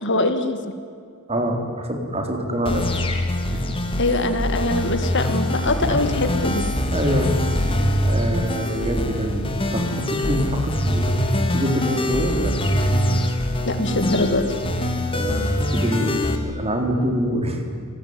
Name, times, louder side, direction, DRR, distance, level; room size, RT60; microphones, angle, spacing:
voice 1, 0.0-0.6 4.0-6.6 13.6-14.4, left 2 dB, 55° left, 9 dB, 2.2 m, -22 dB
voice 2, 1.3-2.9 3.5-3.8 5.9-6.0 6.3-6.4 6.9-11.1 11.4-12.5 15.1-15.4 15.7-17.6, equal, 30° right, 4 dB, 3.8 m, -25 dB
sound 1, 2.7-16.4, left 1 dB, 25° left, 2.8 m, -23 dB
28.5 x 19.5 x 9.7 m, 2.3 s
head